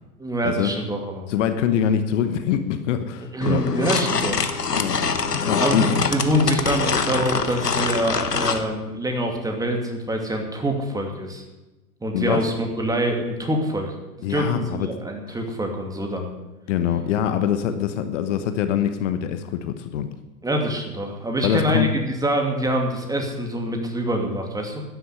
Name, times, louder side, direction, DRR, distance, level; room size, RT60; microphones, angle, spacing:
voice 1, 0.2-1.3 3.3-4.5 5.6-11.4 12.0-13.9 14.3-16.3 20.4-24.8, right 1 dB, 10° right, 2 dB, 2.6 m, -25 dB
voice 2, 1.3-3.6 4.7-5.0 5.4-5.9 12.1-12.4 14.2-14.9 16.7-20.1 21.4-21.9, left 9 dB, 50° left, 9 dB, 1.3 m, -24 dB
sound 1, 3.4-8.6, left 5 dB, 90° left, 1.4 m, -24 dB
12.5 x 10.0 x 8.2 m, 1.1 s
figure-of-eight pair, 100°, 46 cm